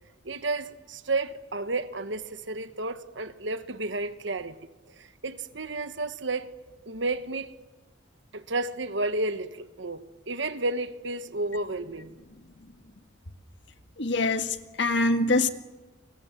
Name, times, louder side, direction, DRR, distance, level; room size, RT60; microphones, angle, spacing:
voice 1, 0.2-4.6 4.9-6.5 6.9-7.5 8.3-12.1, right 2 dB, 65° right, 1.5 m, -32 dB
voice 2, 14.0-15.5, left 2 dB, 60° left, 1.8 m, -24 dB
29.5 x 25.0 x 7.5 m
head